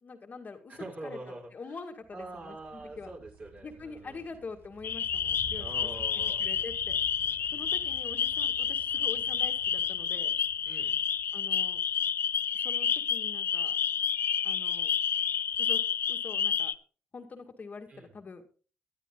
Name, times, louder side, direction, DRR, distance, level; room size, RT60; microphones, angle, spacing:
voice 1, 0.0-1.2 1.5-3.1 3.6-5.9 6.4-7.0 7.5-10.4 11.3-11.8 12.5-13.8 14.4-14.9 15.6-15.8 16.1-16.7 17.1-18.4, left 4 dB, 40° left, 5 dB, 1.9 m, -45 dB
voice 2, 0.7-1.8 2.1-4.3 5.5-6.4 10.7-11.0 17.9-18.1, right 2 dB, 40° right, -1 dB, 5.2 m, -44 dB
sound 1, 2.0-12.6, right 6 dB, 60° right, 1.3 m, -52 dB
sound 2, 4.8-16.7, left 8 dB, 55° left, 0.6 m, -30 dB
20.5 x 12.0 x 2.3 m, 0.39 s
cardioid pair, 90°, 4 cm